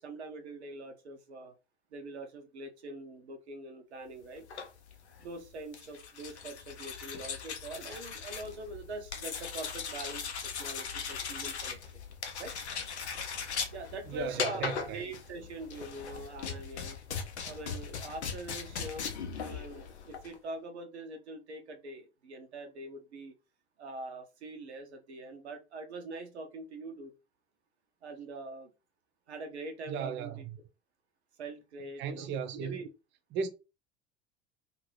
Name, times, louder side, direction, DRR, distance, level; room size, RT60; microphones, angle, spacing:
voice 1, 0.0-1.5 1.9-4.5 5.2-10.3 10.6-11.8 12.4-12.5 13.7-17.0 17.4-19.1 19.4-23.3 23.8-27.1 28.0-28.7 29.3-30.4 31.4-32.3 32.6-32.9, right 2 dB, 80° right, 0.7 m, -43 dB
sound 1, 4.4-20.4, left 6 dB, 85° left, 0.5 m, -39 dB
voice 2, 14.1-15.0 29.9-30.5 32.0-32.8 33.3-33.5, right 6 dB, 35° right, 0.5 m, -36 dB
2.6 x 2.6 x 3.0 m
hypercardioid pair, 70°, 32 cm